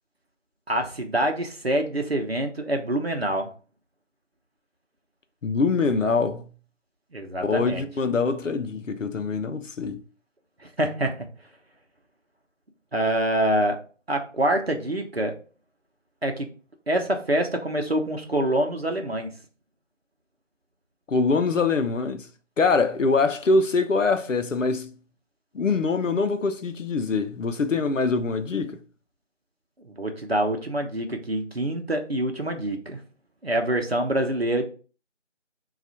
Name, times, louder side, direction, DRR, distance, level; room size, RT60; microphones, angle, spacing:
voice 1, 0.7-3.5 7.1-7.8 10.8-11.3 12.9-13.8 14.1-15.3 16.2-16.5 16.9-19.3 29.8-33.0 33.4-34.6, right 1 dB, 55° right, 0.7 m, -25 dB
voice 2, 5.4-6.5 7.4-10.0 21.1-22.3 22.6-24.9 25.5-28.8, left 4 dB, 90° left, 0.7 m, -24 dB
3.4 x 2.4 x 4.1 m
figure-of-eight pair, 175°, 37 cm